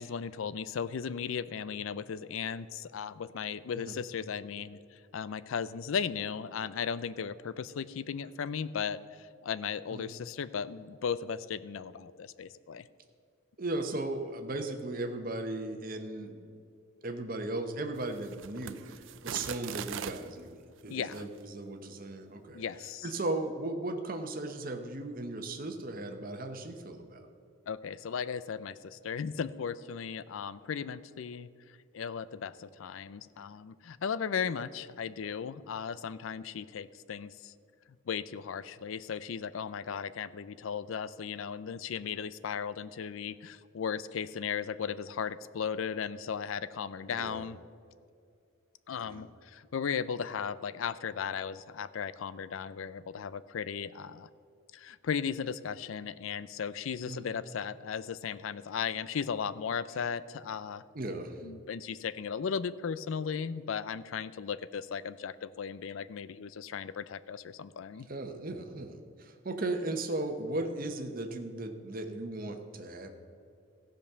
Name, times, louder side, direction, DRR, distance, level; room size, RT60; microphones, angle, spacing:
voice 1, 0.0-12.9 20.9-21.3 22.5-23.1 27.7-31.5 31.9-37.5 38.1-47.6 48.9-54.3 54.7-60.8 61.4-68.1, left 7 dB, 70° left, 16 dB, 0.4 m, -36 dB
voice 2, 13.6-16.5 17.0-22.6 23.0-27.3 47.1-47.5 48.9-49.2 57.1-57.3 60.9-61.4 68.1-73.2, right 2 dB, 40° right, 5 dB, 0.9 m, -37 dB
sound 1, 17.9-20.3 21.0-21.3, right 8 dB, 65° right, 0.4 m, -41 dB
14.5 x 5.2 x 6.7 m, 2.3 s
head